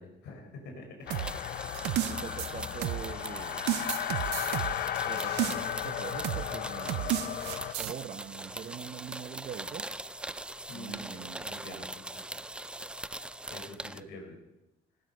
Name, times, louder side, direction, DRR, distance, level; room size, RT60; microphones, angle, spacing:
voice 1, 0.0-1.7 10.7-12.4 13.5-14.4, left 3 dB, 80° left, 2 dB, 4.4 m, -47 dB
sound 1, 1.1-7.7, left 11 dB, 60° left, 0.8 m, -35 dB
sound 2, 1.1-14.0, right 1 dB, 5° right, 0.4 m, -41 dB
sound 3, 1.1-3.3 3.7-5.9 6.2-6.5 6.9-7.9, right 13 dB, 90° right, 0.7 m, -32 dB
voice 2, 2.0-3.6 5.0-7.4 7.8-9.8 10.7-11.9 13.9-14.1, right 8 dB, 50° right, 14 dB, 0.9 m, -43 dB
18.5 x 12.0 x 5.4 m, 0.96 s
cardioid pair, 110°, 17 cm